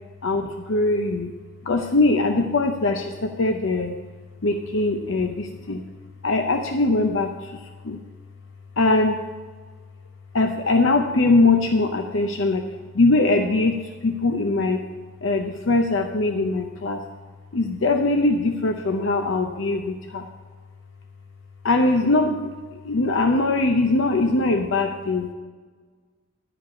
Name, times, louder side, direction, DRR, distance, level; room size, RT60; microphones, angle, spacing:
voice 1, 0.2-1.3 1.6-4.0 4.4-5.8 6.2-8.0 8.8-9.2 10.3-12.7 12.9-14.8 15.2-17.0 17.5-20.3 21.6-25.3, left 2 dB, 65° left, 4 dB, 0.7 m, -21 dB
11.5 x 5.1 x 8.4 m, 1.4 s
head